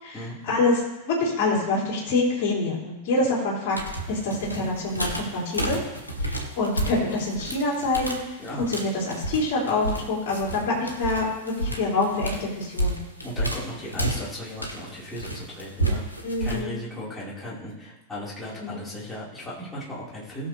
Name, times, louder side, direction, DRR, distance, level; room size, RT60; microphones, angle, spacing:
voice 1, 0.0-3.8 4.1-5.8 6.2-13.0 16.2-16.8 18.6-18.9, left 2 dB, 45° left, -4 dB, 4.0 m, -26 dB
sound 1, 3.7-16.6, right 1 dB, 85° left, 1.8 m, -31 dB
voice 2, 13.2-16.0 16.4-20.5, equal, 10° left, -8 dB, 4.7 m, -36 dB
20.0 x 6.9 x 3.4 m, 1.0 s
figure-of-eight pair, 90°, 0 cm